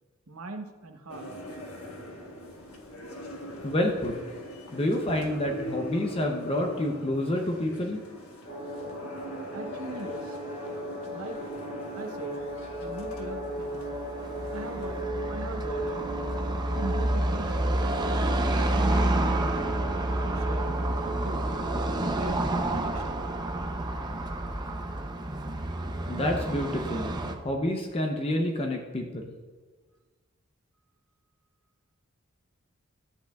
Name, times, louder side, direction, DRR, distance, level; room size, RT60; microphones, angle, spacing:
voice 1, 0.3-1.3 3.3-3.7 9.5-10.4 11.1-11.4 12.0-12.4 12.8-13.9 14.5-15.0 15.3-16.2 16.7-18.2 18.6-19.5 20.2-21.5 21.9-23.3, right 2 dB, 75° right, 5 dB, 0.9 m, -40 dB
sound 1, 1.1-15.0, equal, 85° left, 1.2 m, -42 dB
voice 2, 3.6-4.1 4.7-8.0 26.1-27.2 27.4-29.3, left 1 dB, 25° left, 2 dB, 0.6 m, -28 dB
sound 2, 8.4-22.4, right 1 dB, 45° left, 2.8 m, -37 dB
Car passing by / Traffic noise roadway noise, 12.7-27.4, right 1 dB, 20° right, 0.6 m, -29 dB
12.5 x 8.1 x 2.3 m, 1.4 s
head